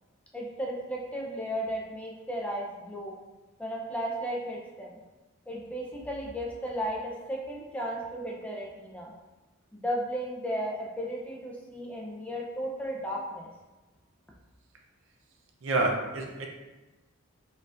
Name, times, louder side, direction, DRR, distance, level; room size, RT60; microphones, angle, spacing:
voice 1, 0.3-3.1 3.6-4.9 5.5-9.1 9.7-13.5, equal, 5° left, -3 dB, 0.5 m, -34 dB
voice 2, 15.6-16.5, right 2 dB, 65° right, 2 dB, 0.6 m, -28 dB
4.2 x 3.9 x 2.5 m, 1.1 s
head